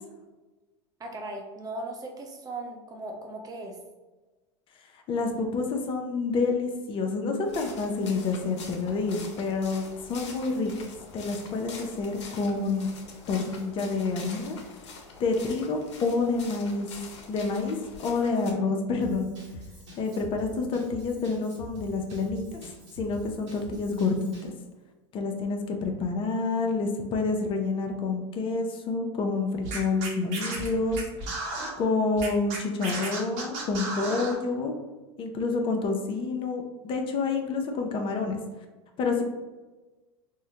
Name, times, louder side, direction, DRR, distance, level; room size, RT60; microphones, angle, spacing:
voice 1, 1.0-3.8, right 2 dB, 25° right, 1 dB, 0.7 m, -38 dB
voice 2, 4.9-10.7 11.1-12.9 13.3-14.6 15.2-16.9 17.3-19.3 20.0-22.6 23.0-24.5 25.1-31.0 31.8-34.7 35.2-38.4 39.0-39.2, left 3 dB, 35° left, 3 dB, 0.5 m, -28 dB
sound 1, 7.4-18.5, left 4 dB, 75° left, 0.6 m, -45 dB
Drum kit / Drum, 19.0-24.6, equal, 80° right, 1.1 m, -45 dB
Scratching (performance technique), 29.6-31.7 32.2-34.4, right 3 dB, 55° right, 0.9 m, -33 dB
3.6 x 2.1 x 2.7 m, 1.2 s
hypercardioid pair, 95°, 15 cm